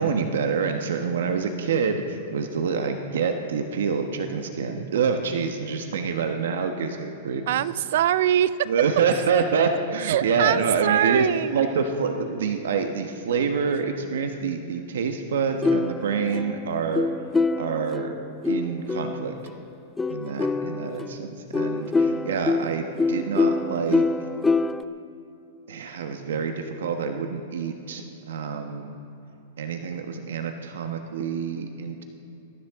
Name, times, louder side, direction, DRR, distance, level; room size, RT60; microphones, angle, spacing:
voice 1, 0.0-7.6 8.7-11.3 11.5-17.1 17.6-18.2 18.4-19.3 20.1-24.0 25.7-28.9 29.6-32.0, right 5 dB, 85° right, 5 dB, 1.1 m, -27 dB
voice 2, 7.5-8.7 10.0-11.6, right 11 dB, 65° right, 17 dB, 0.5 m, -23 dB
sound 1, 15.6-19.5 20.0-24.8, left 3 dB, 10° left, 0.4 m, -25 dB
21.5 x 13.5 x 3.7 m, 2.9 s
supercardioid pair, 150°, 0 cm